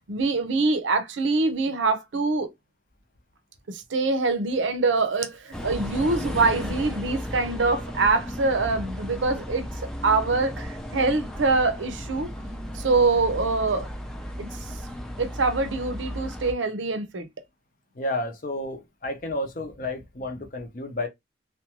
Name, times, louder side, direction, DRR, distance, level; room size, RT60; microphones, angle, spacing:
voice 1, 0.0-2.5 3.7-9.6 10.0-12.3 12.7-13.9 14.4-14.5 15.2-17.3, right 3 dB, 85° right, 0.6 m, -24 dB
sound 1, 5.5-16.5, equal, 5° left, 0.3 m, -35 dB
voice 2, 17.9-21.1, left 1 dB, 45° left, 0.6 m, -31 dB
2.5 x 2.2 x 2.8 m
head